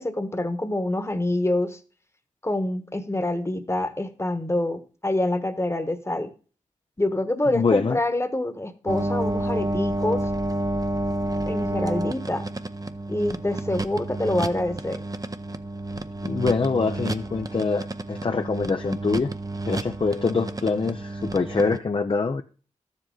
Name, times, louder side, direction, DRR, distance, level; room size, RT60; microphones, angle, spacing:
voice 1, 0.0-1.8 2.4-6.3 7.0-10.3 11.4-12.4 13.1-15.0, left 1 dB, 20° left, 1.2 m, -26 dB
voice 2, 7.5-8.0 16.2-19.3 19.7-22.4, left 4 dB, 40° left, 0.6 m, -24 dB
sound 1, 8.9-21.8, right 2 dB, 30° right, 0.6 m, -30 dB
12.5 x 7.4 x 3.8 m
cardioid pair, 50°, 13 cm